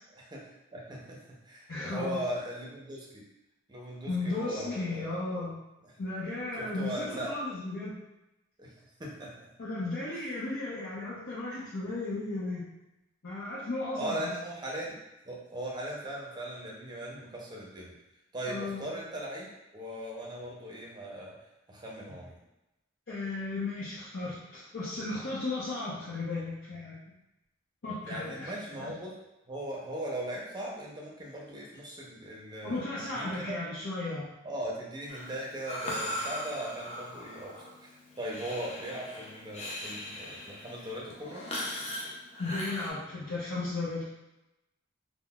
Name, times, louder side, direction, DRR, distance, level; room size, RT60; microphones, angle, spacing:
voice 1, 0.2-3.2 3.7-5.2 6.6-7.3 8.6-8.7 9.0-9.5 10.1-10.3 14.0-15.0 15.2-17.9 18.3-19.5 19.7-21.3 21.7-22.4 28.0-29.1 29.5-32.9 33.1-33.6 34.4-37.6 37.8-41.5, right 1 dB, 20° right, -3 dB, 0.6 m, -39 dB
voice 2, 1.7-2.2 4.1-5.6 6.0-7.9 9.6-12.7 13.2-14.2 18.5-18.8 23.1-27.0 27.8-28.9 32.6-34.3 42.4-44.0, left 2 dB, 70° left, -9 dB, 0.7 m, -35 dB
Breathing, 35.1-42.9, left 1 dB, 35° left, 0.4 m, -39 dB
3.7 x 2.1 x 2.2 m, 0.95 s
head